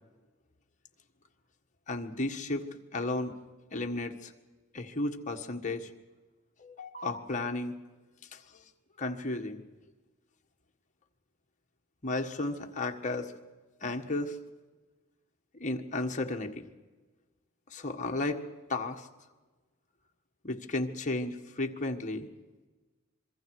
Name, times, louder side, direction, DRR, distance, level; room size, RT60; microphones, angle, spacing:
voice 1, 1.9-2.7 2.9-3.3 3.7-4.3 4.7-5.9 6.6-7.7 8.3-8.4 9.0-9.6 12.0-13.3 13.8-14.4 15.5-16.7 17.7-18.4 18.7-19.1 20.4-22.3, left 2 dB, 35° left, 3 dB, 1.5 m, -33 dB
25.5 x 23.0 x 4.8 m, 1.3 s
head